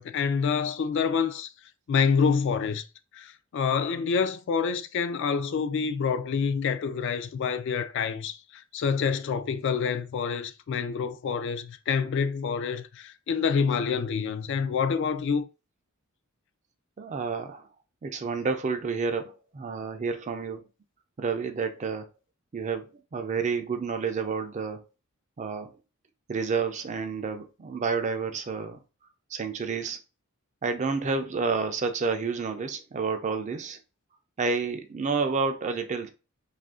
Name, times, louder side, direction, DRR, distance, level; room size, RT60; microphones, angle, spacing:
voice 1, 0.0-1.5 1.9-2.8 3.1-15.5, left 6 dB, 60° left, 0.3 m, -27 dB
voice 2, 17.0-17.7 18.0-20.7 21.2-22.1 22.5-24.8 25.4-25.8 26.3-28.8 29.3-30.0 30.6-33.8 34.4-36.1, right 5 dB, 35° right, 0.4 m, -30 dB
2.7 x 2.5 x 3.6 m
head